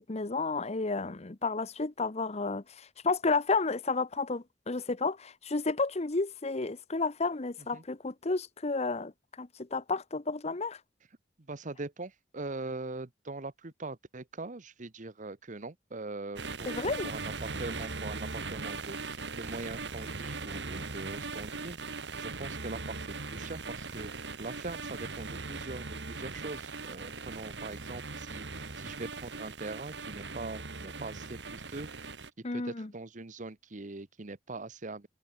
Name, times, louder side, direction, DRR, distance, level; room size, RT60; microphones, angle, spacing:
voice 1, 0.0-9.1 9.4-10.8 16.7-17.1 32.4-32.9, left 3 dB, 35° left, 1.0 m, -32 dB
voice 2, 11.5-21.8 22.2-32.1 32.5-35.1, right 3 dB, 45° right, 1.1 m, -42 dB
sound 1, 16.4-32.3, right 3 dB, 70° right, 2.4 m, -39 dB
head